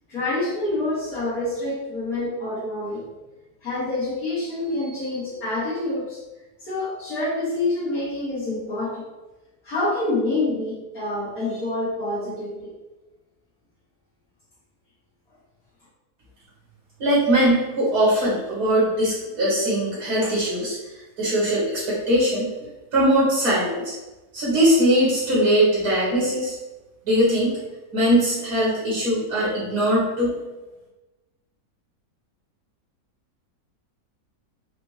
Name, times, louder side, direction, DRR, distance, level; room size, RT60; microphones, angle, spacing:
voice 1, 0.1-3.0 3.6-6.2 6.6-9.1 9.6-12.7, left 2 dB, 65° left, -10 dB, 1.8 m, -27 dB
voice 2, 17.0-20.8 21.2-22.5 22.9-23.9 24.3-26.6 27.1-27.6 27.9-30.4, right 1 dB, 75° right, -7 dB, 1.9 m, -21 dB
5.0 x 2.5 x 3.2 m, 1.1 s
omnidirectional pair, 1.7 m